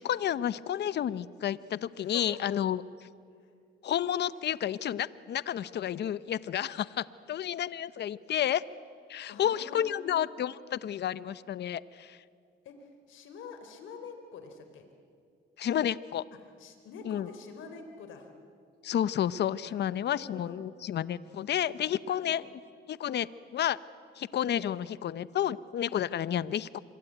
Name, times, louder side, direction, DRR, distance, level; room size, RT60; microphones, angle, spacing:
voice 1, 0.0-2.8 3.8-8.6 9.1-12.2 15.6-16.2 17.1-17.3 18.8-22.5 22.9-23.8 24.2-26.8, left 10 dB, 60° left, 17 dB, 0.8 m, -31 dB
voice 2, 2.0-2.4 3.4-3.5 9.3-10.1 12.6-14.9 16.6-18.3 19.6-19.8 20.0-20.6 22.1-22.3, left 5 dB, 80° left, 6 dB, 3.4 m, -46 dB
26.0 x 22.0 x 9.2 m, 2.3 s
cardioid pair, 90°, 20 cm